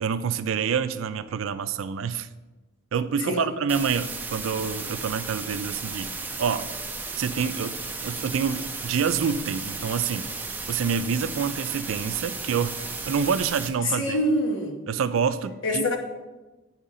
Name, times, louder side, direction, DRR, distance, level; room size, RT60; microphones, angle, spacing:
voice 1, 0.0-2.3 2.9-6.1 6.4-6.7 7.2-10.3 10.7-12.8 13.1-14.2 14.9-15.9, right 6 dB, 75° right, 13 dB, 0.4 m, -27 dB
sound 1, 3.7-13.7, right 4 dB, 10° right, 0.5 m, -34 dB
voice 2, 13.8-14.8 15.6-16.0, left 1 dB, 65° left, 1 dB, 1.2 m, -25 dB
8.8 x 5.6 x 3.7 m, 1.2 s
head